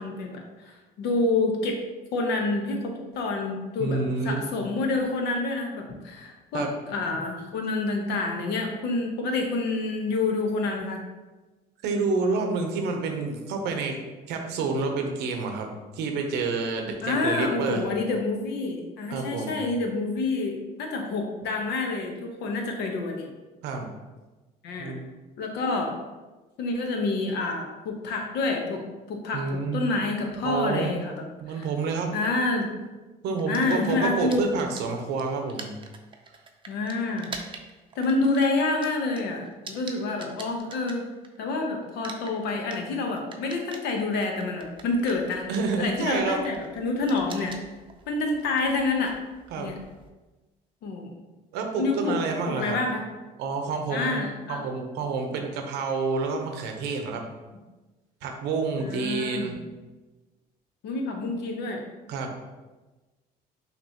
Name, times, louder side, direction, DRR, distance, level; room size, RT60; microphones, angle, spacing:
voice 1, 0.0-1.8 2.1-4.0 4.2-11.0 17.0-23.3 24.6-25.0 25.4-25.9 26.6-28.8 29.1-31.1 31.5-31.7 32.1-32.7 33.5-34.4 36.7-37.3 38.0-41.1 41.4-45.4 45.8-47.6 48.1-49.2 49.6-49.7 50.8-51.1 51.8-52.2 52.5-53.0 53.9-54.6 58.8-59.5 60.8-61.8, left 3 dB, 80° left, 2 dB, 0.9 m, -28 dB
voice 2, 3.8-4.4 6.5-6.7 11.8-14.0 14.3-15.7 15.9-17.8 19.1-19.5 23.6-23.9 24.8-25.0 29.3-29.8 30.4-30.9 31.4-32.1 33.2-35.7 45.5-46.5 47.3-47.4 49.5-49.7 51.5-52.8 53.4-57.2 58.2-59.6 62.1-62.3, right 4 dB, 85° right, 4 dB, 0.8 m, -28 dB
sound 1, 33.4-41.6 41.8-50.1, right 4 dB, 30° right, 0.5 m, -45 dB
5.9 x 3.0 x 2.8 m, 1.2 s
cardioid pair, 110°, 17 cm